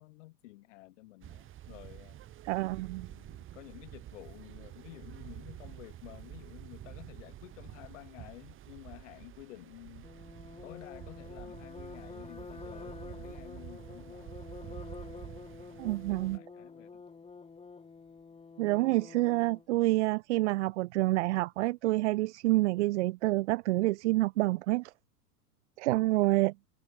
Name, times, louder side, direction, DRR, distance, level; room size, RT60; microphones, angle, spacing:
voice 1, 0.0-2.2 3.1-10.1 10.6-14.4 16.3-17.0 26.0-26.3, left 19 dB, 50° left, 6.4 m, -51 dB
sound 1, 1.2-16.4, right 12 dB, 25° right, 2.8 m, -48 dB
voice 2, 2.4-3.1 15.8-16.4 18.6-24.9 25.8-26.5, right 19 dB, 45° right, 1.4 m, -28 dB
sound 2, 10.0-19.7, left 4 dB, 10° left, 6.6 m, -48 dB
figure-of-eight pair, 100°, 48 cm